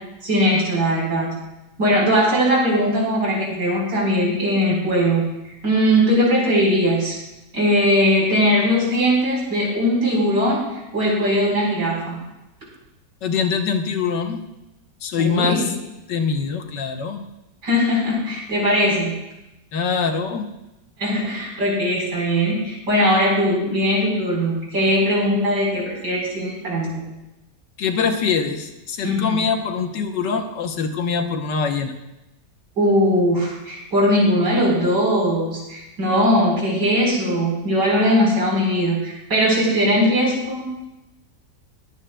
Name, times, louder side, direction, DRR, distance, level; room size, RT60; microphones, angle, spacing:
voice 1, 0.2-1.4 1.8-5.3 5.6-7.2 7.5-10.6 10.9-12.2 15.2-15.7 17.6-19.1 21.0-27.0 29.0-29.4 32.8-40.8, equal, 80° right, -3 dB, 5.0 m, -20 dB
voice 2, 13.2-14.4 15.0-15.7 16.1-17.2 19.7-20.5 27.8-31.9, left 5 dB, 90° left, 5 dB, 1.6 m, -23 dB
22.0 x 9.1 x 2.3 m, 0.95 s
omnidirectional pair, 1.9 m